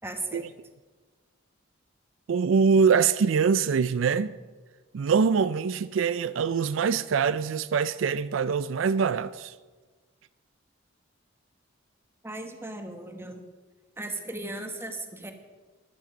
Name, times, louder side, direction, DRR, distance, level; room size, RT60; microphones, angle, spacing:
voice 1, 0.0-0.5 12.2-13.4 14.0-15.3, right 2 dB, 15° right, 1.3 m, -36 dB
voice 2, 2.3-4.3 4.9-9.5, right 6 dB, 80° right, 0.4 m, -24 dB
13.0 x 11.0 x 5.2 m
head